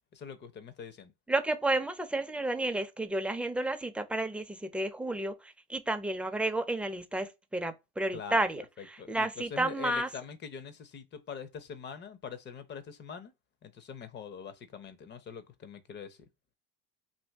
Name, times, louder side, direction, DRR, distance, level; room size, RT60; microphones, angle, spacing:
voice 1, 0.1-1.1 8.1-8.5 8.8-13.3 13.6-16.2, left 6 dB, 35° left, 0.7 m, -43 dB
voice 2, 1.3-10.1, right 2 dB, 5° right, 0.5 m, -31 dB
2.6 x 2.6 x 3.4 m
supercardioid pair, 100°, 30 cm